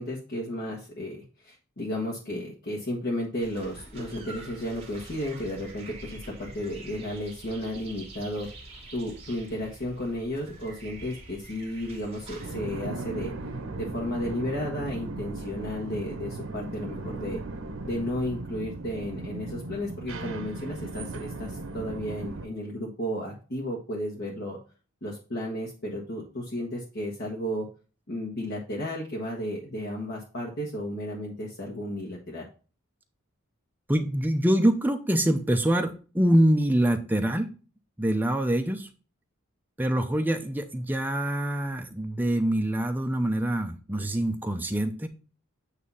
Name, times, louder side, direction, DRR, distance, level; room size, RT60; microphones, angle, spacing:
voice 1, 0.0-8.5 8.9-13.3 13.8-17.4 17.8-24.6 25.0-27.7 28.1-32.5, left 1 dB, 55° left, -3 dB, 1.3 m, -33 dB
sound 1, 3.4-12.6, right 2 dB, 30° right, 1.9 m, -46 dB
sound 2, 12.4-22.5, right 2 dB, 80° right, 0.9 m, -37 dB
voice 2, 33.9-37.5 38.0-38.9 39.8-45.1, right 1 dB, 10° right, 6 dB, 0.6 m, -25 dB
8.3 x 2.8 x 5.4 m, 0.36 s
head